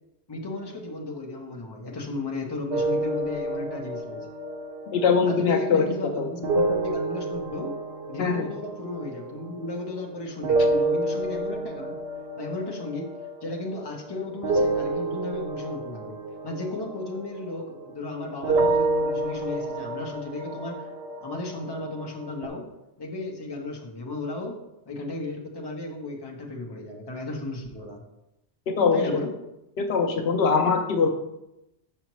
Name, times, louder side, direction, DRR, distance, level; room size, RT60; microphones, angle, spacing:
voice 1, 0.3-4.3 5.2-7.7 8.1-12.0 12.4-13.1 13.4-16.2 16.4-20.9 21.2-22.7 23.0-24.6 24.9-28.0 28.9-29.3, left 2 dB, 25° left, 1 dB, 0.8 m, -34 dB
sound 1, 2.7-10.1 10.4-18.1 18.4-22.5, right 2 dB, 70° right, 0.8 m, -29 dB
voice 2, 4.9-5.8 6.2-6.3 8.2-8.5 28.7-29.2 29.8-31.1, left 5 dB, 75° left, 5 dB, 0.8 m, -22 dB
5.7 x 5.5 x 3.0 m, 0.89 s
omnidirectional pair, 1.1 m